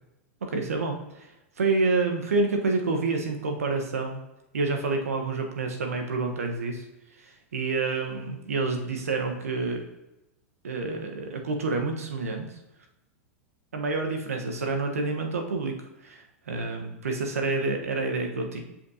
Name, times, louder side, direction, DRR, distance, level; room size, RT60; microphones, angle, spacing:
voice 1, 0.4-1.3 1.6-4.2 4.5-6.8 7.2-9.8 10.6-12.5 13.7-15.7 16.0-18.6, right 3 dB, 85° right, 3 dB, 1.2 m, -28 dB
7.1 x 5.8 x 2.8 m, 0.93 s
hypercardioid pair, 110°, 8 cm